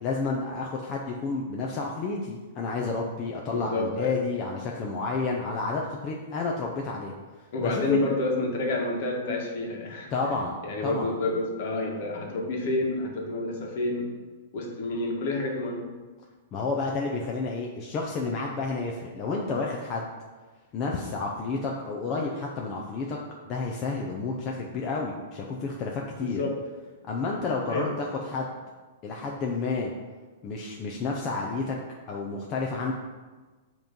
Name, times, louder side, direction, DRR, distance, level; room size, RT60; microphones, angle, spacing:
voice 1, 0.0-7.1 7.6-8.0 10.1-11.1 16.5-20.1 20.7-23.2 23.4-26.4 27.1-28.5 29.0-29.9 30.4-31.8 32.1-32.9, left 3 dB, 25° left, -2 dB, 0.5 m, -30 dB
voice 2, 3.5-4.2 7.5-10.4 10.6-14.1 14.5-15.8 26.2-26.6 27.7-27.9, left 2 dB, 50° left, 0 dB, 1.3 m, -29 dB
7.6 x 3.0 x 5.2 m, 1.3 s
supercardioid pair, 170°, 0 cm